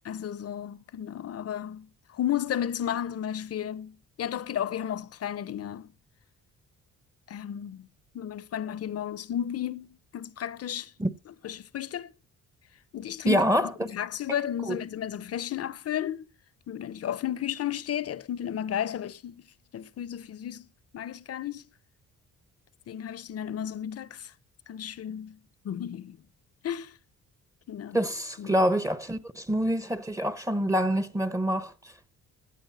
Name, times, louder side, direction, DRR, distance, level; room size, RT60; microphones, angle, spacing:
voice 1, 0.1-5.9 7.3-7.9 8.1-10.9 11.4-12.1 12.9-16.3 16.7-19.4 19.7-20.7 20.9-21.7 22.9-24.3 24.7-25.4 25.6-26.2 26.6-27.0 27.7-28.0 28.4-28.5, left 10 dB, 50° left, 0.8 m, -33 dB
voice 2, 13.3-13.7 14.3-14.8 27.9-31.7, equal, 10° right, 0.9 m, -26 dB
16.0 x 8.9 x 4.1 m
cardioid pair, 90°, 30 cm